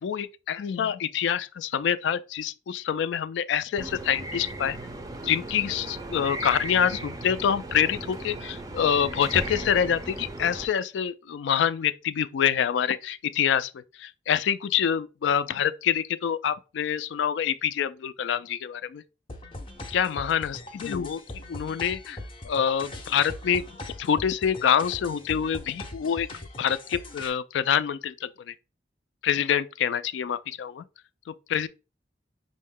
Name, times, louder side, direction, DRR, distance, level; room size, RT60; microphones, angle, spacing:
voice 1, 0.0-4.8 5.2-13.7 14.0-19.0 19.9-22.2 22.4-23.6 24.0-26.3 26.6-28.5 29.2-30.8 31.5-31.7, left 8 dB, 75° left, 0.3 m, -26 dB
sound 1, 3.8-10.7, right 2 dB, 20° right, 0.4 m, -37 dB
sound 2, 19.3-27.3, left 1 dB, 30° left, 0.6 m, -41 dB
5.4 x 2.1 x 3.5 m
head